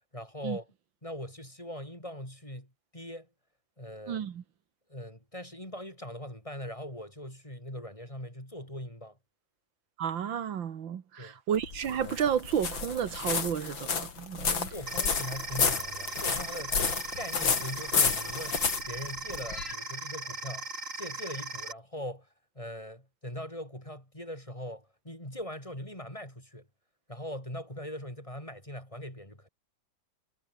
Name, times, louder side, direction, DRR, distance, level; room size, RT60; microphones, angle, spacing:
voice 1, 0.1-0.7 1.0-3.3 3.8-4.3 4.9-9.2 11.2-11.4 14.7-16.8 17.1-20.7 21.0-22.3 22.5-26.7 27.1-29.5, equal, 15° left, 8.0 m, -41 dB
voice 2, 4.1-4.4 10.0-14.7, right 8 dB, 80° right, 2.2 m, -32 dB
sound 1, 11.6-19.7, left 5 dB, 80° left, 3.6 m, -31 dB
sound 2, 14.9-21.7, right 2 dB, 40° right, 4.7 m, -39 dB
omnidirectional pair, 2.1 m